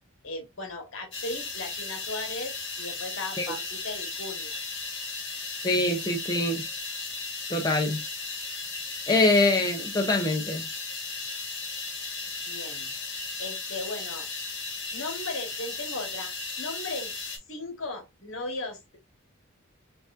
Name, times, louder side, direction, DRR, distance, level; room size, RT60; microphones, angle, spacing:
voice 1, 0.2-4.6 12.4-12.9 13.4-14.3 14.9-16.3 16.6-17.1 17.5-19.0, left 2 dB, 70° left, 1.4 m, -37 dB
sound 1, 1.1-17.4, left 3 dB, 55° left, 1.3 m, -36 dB
voice 2, 5.6-6.6 7.5-8.0 9.1-10.7, left 2 dB, 20° left, 0.5 m, -24 dB
4.5 x 2.5 x 2.5 m
head